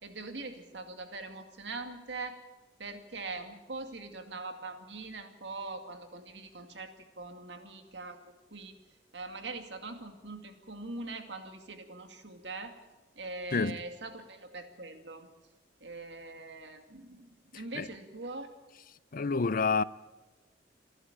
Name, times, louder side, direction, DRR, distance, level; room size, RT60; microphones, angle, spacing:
voice 1, 0.0-2.4 2.8-8.7 9.1-12.7 13.2-15.3 15.8-18.5, right 3 dB, 70° right, 2.4 m, -42 dB
voice 2, 19.1-19.8, left 4 dB, 50° left, 0.6 m, -28 dB
28.0 x 11.5 x 8.9 m
head